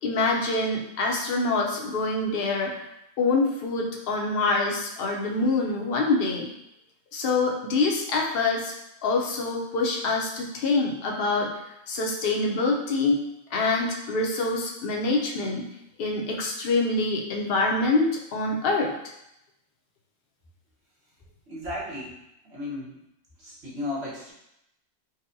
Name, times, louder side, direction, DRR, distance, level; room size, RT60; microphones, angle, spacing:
voice 1, 0.0-2.8 3.2-6.5 7.1-8.7 9.0-11.5 11.9-13.2 13.5-15.7 16.0-18.9, left 3 dB, 65° left, -1 dB, 0.7 m, -25 dB
voice 2, 21.5-22.1 22.4-23.0 23.4-24.3, left 2 dB, 70° right, -7 dB, 1.3 m, -34 dB
4.0 x 2.1 x 2.6 m, 0.84 s
omnidirectional pair, 1.2 m